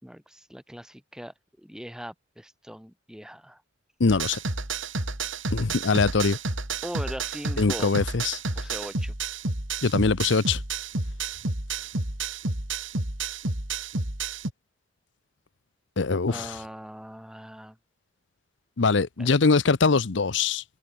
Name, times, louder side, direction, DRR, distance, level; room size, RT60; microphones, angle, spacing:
voice 1, 0.0-3.6 6.8-8.1 8.6-9.1 16.3-17.8 19.2-19.3, equal, 5° right, 2.6 m, -40 dB
voice 2, 4.0-4.4 5.5-6.4 7.6-8.4 9.8-10.6 16.0-16.5 18.8-20.6, left 4 dB, 65° left, 0.8 m, -22 dB
sound 1, 4.1-14.5, right 3 dB, 75° right, 3.7 m, -31 dB
head